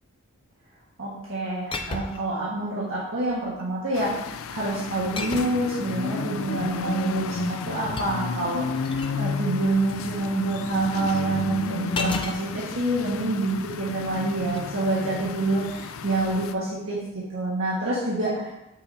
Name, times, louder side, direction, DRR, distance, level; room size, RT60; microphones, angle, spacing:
voice 1, 1.0-17.0 17.3-18.5, right 2 dB, 80° right, -7 dB, 1.6 m, -27 dB
sound 1, 1.7-2.4 3.3-3.7 5.2-5.7 7.4-9.2 11.9-12.4 14.4-14.6, left 3 dB, 25° left, 0.5 m, -33 dB
sound 2, 3.9-16.5, left 5 dB, 85° left, 0.4 m, -32 dB
8.5 x 6.4 x 2.8 m, 0.94 s
head